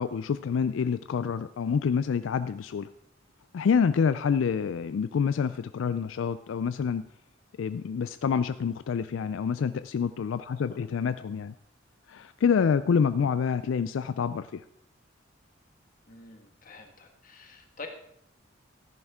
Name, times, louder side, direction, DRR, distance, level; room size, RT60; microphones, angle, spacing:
voice 1, 0.0-2.9 3.5-7.0 7.6-11.5 12.1-14.6, left 6 dB, 85° left, 13 dB, 0.3 m, -27 dB
voice 2, 10.5-10.8 16.1-17.9, left 3 dB, 45° left, 4 dB, 1.6 m, -47 dB
13.5 x 10.5 x 3.6 m, 0.72 s
head